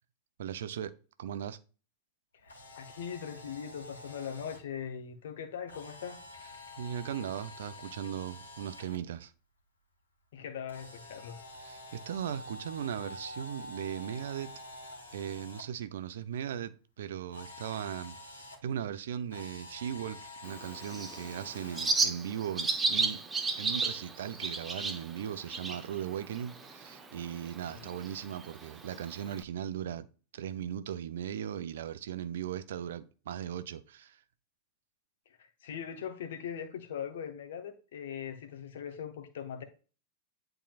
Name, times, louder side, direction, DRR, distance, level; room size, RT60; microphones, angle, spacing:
voice 1, 0.4-1.6 6.8-9.3 11.6-14.5 15.1-23.2 23.6-30.1 30.3-34.2, right 9 dB, 60° right, 0.6 m, -38 dB
voice 2, 2.3-6.2 10.3-11.4 11.9-12.0 27.7-27.9 35.3-39.6, left 8 dB, 60° left, 1.2 m, -41 dB
Camera, 2.4-4.6 5.7-9.0 10.7-15.6 17.3-18.6 19.3-22.0, left 2 dB, 80° left, 1.6 m, -48 dB
Bird, 20.5-29.4, right 3 dB, 15° right, 0.8 m, -35 dB
10.0 x 3.9 x 2.4 m
figure-of-eight pair, 90°, 0 cm